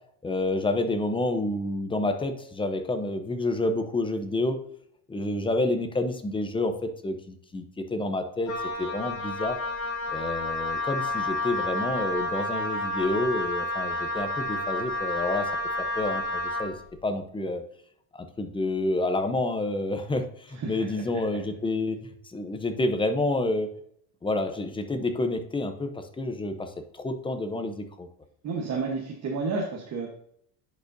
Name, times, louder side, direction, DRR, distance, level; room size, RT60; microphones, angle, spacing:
voice 1, 0.2-4.6 5.1-6.7 7.0-7.6 7.9-8.5 8.8-9.6 10.1-15.5 15.8-16.7 17.0-17.6 18.1-23.7 24.2-28.1, left 2 dB, 10° left, 7 dB, 0.7 m, -29 dB
Wind instrument woodwind instrument, 8.5-16.7, left 2 dB, 40° left, 1.9 m, -30 dB
voice 2, 20.5-20.9 28.4-30.1, right 4 dB, 35° right, 0 dB, 1.2 m, -31 dB
10.0 x 5.2 x 2.7 m, 0.67 s
supercardioid pair, 125°, 46 cm